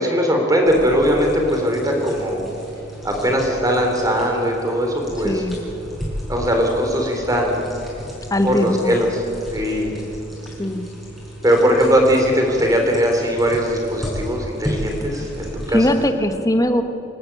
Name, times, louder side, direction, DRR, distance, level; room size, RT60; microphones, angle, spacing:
voice 1, 0.0-2.4 3.0-5.4 6.3-7.6 8.4-9.1 9.5-9.9 11.4-15.8, equal, 20° right, 2 dB, 3.6 m, -19 dB
sound 1, 0.6-16.1, equal, ahead, 5.8 m, -34 dB
voice 2, 5.2-5.6 8.3-8.9 10.6-10.9 15.7-16.8, left 1 dB, 20° left, 8 dB, 1.1 m, -20 dB
26.5 x 12.5 x 8.9 m, 2.9 s
head